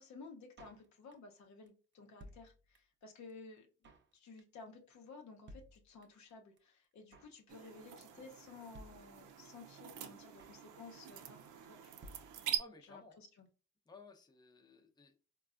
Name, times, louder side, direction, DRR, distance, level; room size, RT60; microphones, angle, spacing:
voice 1, 0.0-3.7 4.1-12.1 12.8-13.5, left 4 dB, 65° left, 3 dB, 0.8 m, -55 dB
Drum kit, 0.6-1.4 1.7-1.8 1.9-3.0 3.3-3.4 3.6-4.1 4.4-4.7 4.9-5.0 5.2-5.3 5.5-6.3 6.6-6.7 6.8-7.4 7.7-7.9 8.2-8.3 8.5-8.6 8.7-9.6 9.8-9.9 10.1-10.7 10.9-11.2 11.5-11.6 11.8-11.9 12.0-12.9 13.1-13.2 13.4-13.5, equal, 40° right, 0.6 m, -57 dB
sound 1, 7.5-12.6, right 11 dB, 90° right, 0.5 m, -45 dB
voice 2, 12.6-13.2 13.9-15.2, left 3 dB, 15° left, 2 dB, 0.6 m, -57 dB
3.9 x 2.3 x 2.4 m, 0.36 s
cardioid pair, 90°, 30 cm